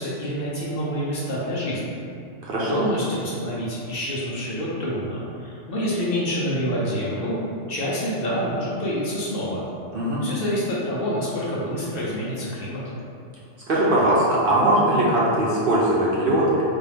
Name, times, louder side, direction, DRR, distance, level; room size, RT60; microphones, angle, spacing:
voice 1, 0.0-2.0 2.6-7.4 7.7-9.6 10.2-12.8, equal, 55° left, -6 dB, 0.7 m, -27 dB
voice 2, 2.4-2.8 9.9-10.2 13.7-16.5, right 1 dB, 55° right, -6 dB, 0.7 m, -20 dB
3.9 x 2.3 x 3.3 m, 2.5 s
omnidirectional pair, 1.3 m